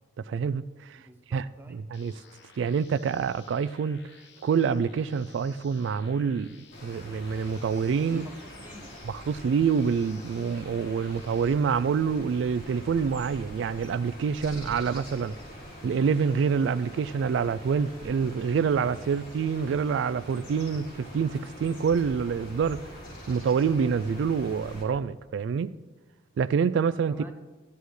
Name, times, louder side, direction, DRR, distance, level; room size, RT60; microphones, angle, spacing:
voice 1, 0.2-1.0 1.3-2.1 2.6-4.0 4.4-6.6 6.8-8.2 9.1-15.3 15.8-22.8 23.3-25.7 26.4-27.2, right 6 dB, 85° right, 16 dB, 0.3 m, -26 dB
voice 2, 1.1-1.8 8.0-8.9 27.1-27.3, right 1 dB, 10° right, 4 dB, 0.9 m, -47 dB
sound 1, 1.9-11.5, left 5 dB, 75° left, 1.1 m, -55 dB
sound 2, 6.7-24.8, equal, 50° left, 3.7 m, -44 dB
14.0 x 10.5 x 3.2 m, 1.2 s
head